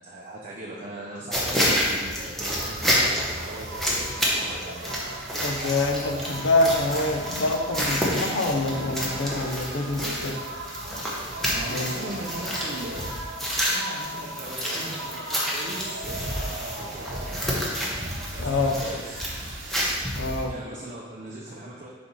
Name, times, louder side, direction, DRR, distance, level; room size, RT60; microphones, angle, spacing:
voice 1, 0.0-4.9 11.5-17.4 18.3-19.3 20.5-21.9, right 1 dB, 40° right, -4 dB, 0.7 m, -39 dB
sound 1, 1.3-20.5, equal, ahead, 1.0 m, -29 dB
sound 2, 2.4-20.0, right 2 dB, 85° right, 0.8 m, -39 dB
voice 2, 5.4-10.4 11.7-11.9 18.4-18.8 20.1-20.5, left 2 dB, 70° left, 3 dB, 0.7 m, -26 dB
4.9 x 4.2 x 5.4 m, 1.5 s
head